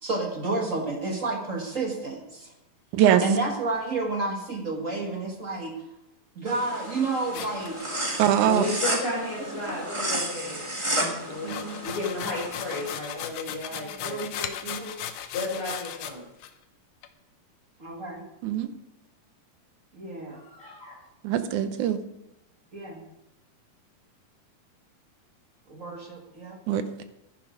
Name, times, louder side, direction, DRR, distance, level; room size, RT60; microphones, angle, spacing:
voice 1, 0.0-2.5 3.2-5.7 6.3-7.8 9.7-9.8 11.4-11.8 13.7-15.0 17.8-18.2 19.9-20.4 22.7-23.0 25.7-26.6, right 3 dB, 40° right, 1 dB, 1.1 m, -31 dB
voice 2, 2.9-3.2 8.2-8.6 18.4-18.7 21.2-22.0 26.7-27.0, right 10 dB, 75° right, 10 dB, 2.1 m, -22 dB
sound 1, 6.5-12.9, right 1 dB, 20° right, 0.8 m, -32 dB
sound 2, 7.3-8.4 11.3-16.1 16.4-16.5 17.0-17.1, left 10 dB, 80° left, 2.4 m, -37 dB
voice 3, 8.4-10.6 10.9-11.6 11.8-14.2 15.3-16.3 20.3-21.0, left 2 dB, 40° left, -7 dB, 4.8 m, -33 dB
12.0 x 10.5 x 5.1 m, 0.89 s
omnidirectional pair, 3.9 m